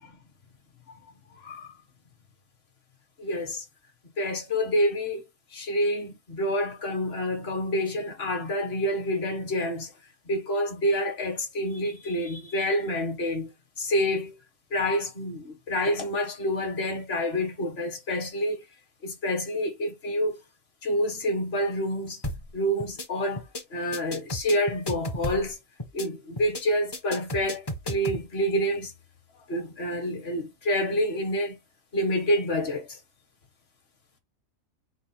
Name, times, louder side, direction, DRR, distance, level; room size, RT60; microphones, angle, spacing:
voice 1, 3.2-3.6 4.2-5.2 5.5-9.9 10.3-13.5 13.8-14.3 14.7-18.6 19.0-20.4 20.8-22.2 22.5-25.6 25.9-28.9 29.5-31.6 31.9-33.0, equal, 45° left, 1.4 m, -28 dB
sound 1, 22.2-22.5 22.8-23.1 23.4-23.6 23.9-25.5 25.8-26.1 26.4-26.6 26.9-28.2, left 1 dB, 20° left, 0.7 m, -33 dB
4.7 x 2.3 x 4.2 m
omnidirectional pair, 1.5 m